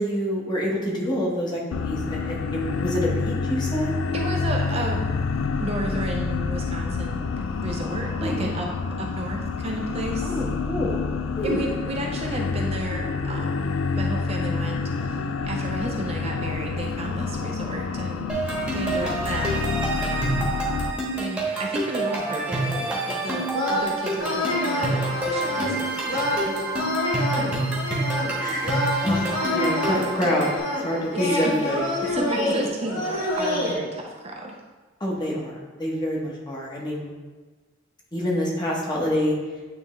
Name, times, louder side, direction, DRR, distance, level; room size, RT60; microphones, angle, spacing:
voice 1, 0.0-3.9 8.2-8.6 10.2-11.1 11.4-11.7 19.0-19.2 27.2-27.3 28.4-30.5 30.8-32.1 35.0-37.1 38.1-39.3, equal, 20° left, -4 dB, 1.1 m, -27 dB
sound 1, 1.7-20.9, left 4 dB, 85° left, 0.4 m, -28 dB
voice 2, 4.1-5.1 5.6-8.7 9.0-10.4 11.4-18.4 18.7-20.2 21.1-26.6 31.1-31.5 32.1-34.6, right 1 dB, 30° right, 1 dB, 0.5 m, -33 dB
sound 2, 18.3-30.6, right 2 dB, 5° right, 1.2 m, -28 dB
sound 3, 23.5-33.7, left 1 dB, 70° left, 1.4 m, -27 dB
8.8 x 3.3 x 3.2 m, 1.3 s
head